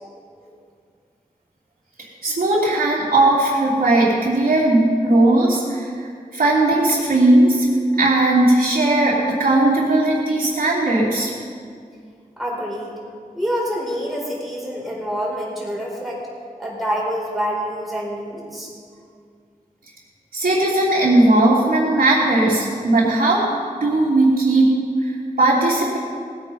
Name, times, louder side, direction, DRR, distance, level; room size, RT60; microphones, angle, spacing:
voice 1, 2.2-7.7 8.0-11.3 20.3-23.4 23.8-24.6 25.0-25.1 25.4-26.0, right 2 dB, 80° right, -9 dB, 3.0 m, -17 dB
voice 2, 12.4-12.9 13.3-16.2 16.6-18.7, equal, ahead, -4 dB, 4.6 m, -26 dB
19.5 x 9.0 x 5.5 m, 2.2 s
wide cardioid pair, 105°, 15 cm